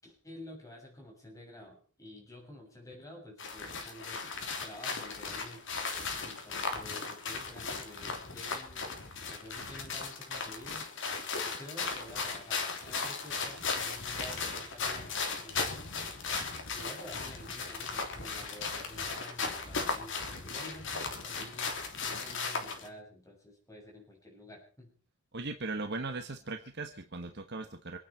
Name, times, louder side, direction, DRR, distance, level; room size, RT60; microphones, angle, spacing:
voice 1, 0.0-4.2 4.6-5.6 6.2-9.0 9.3-10.9 11.4-15.9 16.7-24.9, left 1 dB, 15° left, 0 dB, 6.8 m, -50 dB
sound 1, 3.4-22.9, left 4 dB, 60° left, 3.2 m, -37 dB
voice 2, 25.3-28.0, right 3 dB, 50° right, 6 dB, 1.3 m, -38 dB
26.5 x 9.8 x 4.5 m, 0.42 s
head